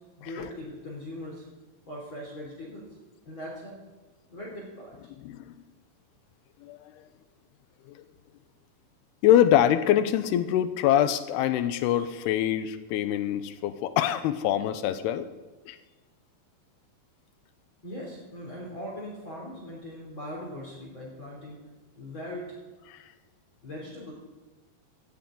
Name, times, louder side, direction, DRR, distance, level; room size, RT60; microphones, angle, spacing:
voice 1, 0.2-1.4 1.9-2.9 3.3-3.8 4.3-5.0 17.8-21.6 21.9-22.6 23.6-24.1, left 1 dB, 30° left, -4 dB, 3.6 m, -40 dB
voice 2, 9.2-15.3 15.7-15.8 22.9-23.0, left 11 dB, 85° left, 11 dB, 2.8 m, -24 dB
17.5 x 15.5 x 3.9 m, 1.3 s
omnidirectional pair, 4.7 m